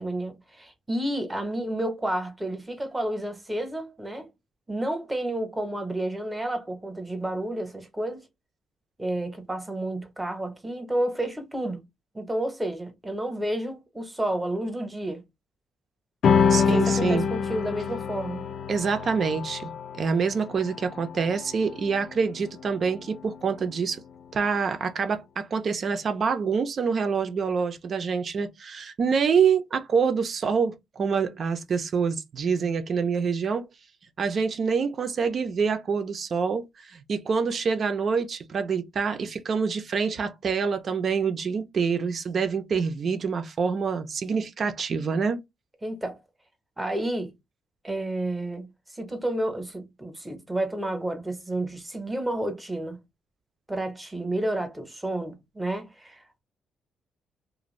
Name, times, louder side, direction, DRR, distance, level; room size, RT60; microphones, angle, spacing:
voice 1, 0.0-4.3 4.7-8.2 9.0-11.8 12.1-15.2 16.5-18.5 45.8-46.2 46.8-47.3 47.8-53.0 53.7-56.4, right 1 dB, 10° right, 0.9 m, -30 dB
sound 1, 16.2-23.0, left 6 dB, 60° left, 0.4 m, -26 dB
voice 2, 16.5-17.3 18.7-24.0 24.3-33.7 34.2-45.4, right 5 dB, 50° right, 0.5 m, -26 dB
2.5 x 2.2 x 3.1 m
cardioid pair, 90°, 0 cm